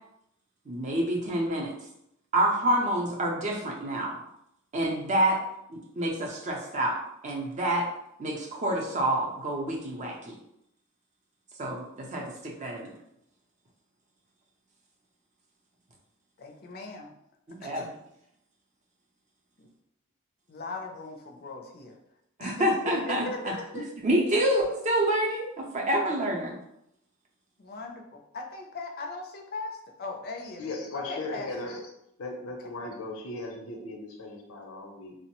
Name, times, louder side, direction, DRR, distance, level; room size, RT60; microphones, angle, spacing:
voice 1, 0.7-1.7 2.3-4.2 4.7-5.4 5.7-7.0 7.2-7.9 8.2-10.4 11.6-12.9 17.5-17.8 22.4-26.6, right 1 dB, 35° right, -1 dB, 0.5 m, -28 dB
voice 2, 16.4-17.1 17.6-18.0 19.6-19.7 20.5-22.0 22.4-23.8 27.6-30.6 30.9-31.5, left 3 dB, 45° left, 3 dB, 0.4 m, -39 dB
voice 3, 30.6-31.8 32.2-35.2, left 2 dB, 90° left, 2 dB, 0.6 m, -37 dB
3.0 x 2.0 x 2.9 m, 0.78 s
head